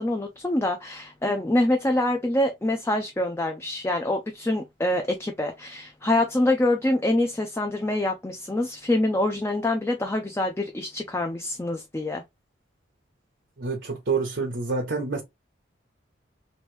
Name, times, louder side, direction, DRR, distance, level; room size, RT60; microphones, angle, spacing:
voice 1, 0.0-12.2, left 1 dB, 15° left, 0.4 m, -25 dB
voice 2, 13.6-15.2, right 4 dB, 75° right, 0.8 m, -27 dB
3.1 x 2.6 x 3.1 m
head